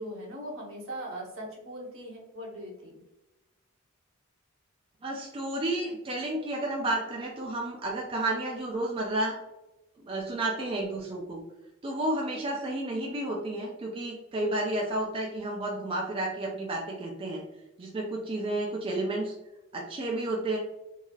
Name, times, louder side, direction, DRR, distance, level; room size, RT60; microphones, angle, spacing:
voice 1, 0.0-3.0, equal, 65° right, -2 dB, 1.0 m, -40 dB
voice 2, 5.0-9.4 10.0-11.4 11.8-17.4 17.8-19.3 19.7-20.6, right 1 dB, 25° right, -1 dB, 0.4 m, -31 dB
3.1 x 2.7 x 2.4 m, 0.96 s
head